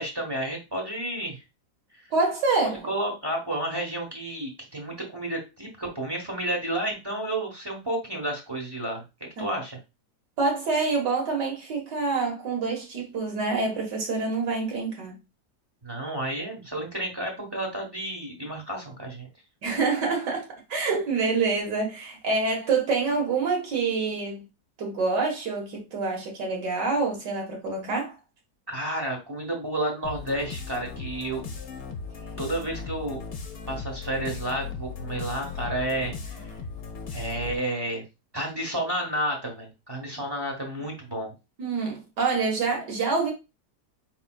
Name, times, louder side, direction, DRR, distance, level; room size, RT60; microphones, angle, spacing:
voice 1, 0.0-1.4 2.0-2.1 2.8-9.0 9.4-9.8 15.8-19.3 28.7-31.4 32.4-33.2 33.7-36.5 37.1-38.0 38.3-41.3, right 1 dB, 15° right, 1.1 m, -31 dB
voice 2, 2.1-2.9 10.4-15.2 19.6-24.4 24.8-28.2 41.6-43.3, right 4 dB, 80° right, 2.2 m, -26 dB
sound 1, 30.0-37.7, left 5 dB, 45° left, 1.0 m, -37 dB
5.0 x 4.1 x 2.3 m
omnidirectional pair, 1.8 m